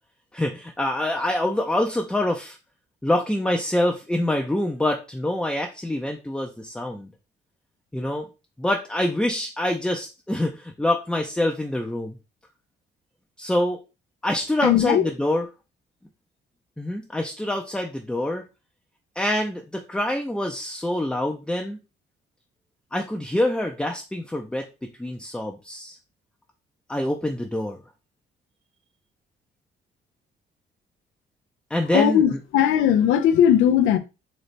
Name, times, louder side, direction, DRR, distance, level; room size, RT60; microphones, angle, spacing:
voice 1, 0.3-2.6 3.0-7.1 7.9-8.3 8.6-12.2 13.4-13.8 14.2-15.4 16.8-18.4 19.2-21.8 22.9-26.0 26.9-27.8 31.7-32.2, left 1 dB, 5° left, 0.5 m, -25 dB
voice 2, 14.6-15.1 31.9-34.0, left 10 dB, 90° left, 0.5 m, -18 dB
4.1 x 2.8 x 3.2 m
cardioid pair, 90°, 20 cm